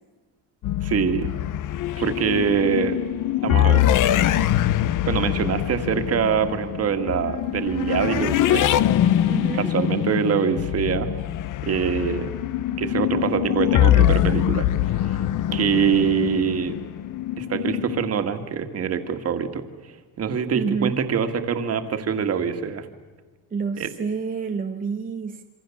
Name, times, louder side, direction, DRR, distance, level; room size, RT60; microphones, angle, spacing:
sound 1, 0.6-18.1, left 12 dB, 50° left, 0.9 m, -23 dB
voice 1, 0.8-1.3 2.0-3.0 3.4-3.9 5.0-8.7 9.5-11.1 11.6-12.3 12.8-14.7 15.0-15.2 15.5-16.8 17.4-22.9 23.8-23.9, right 7 dB, 35° right, 8 dB, 1.9 m, -24 dB
voice 2, 9.3-9.7 20.5-21.0 23.5-25.4, right 5 dB, 20° right, 5 dB, 0.8 m, -28 dB
27.0 x 25.0 x 7.1 m, 1.4 s
cardioid pair, 170°, 40 cm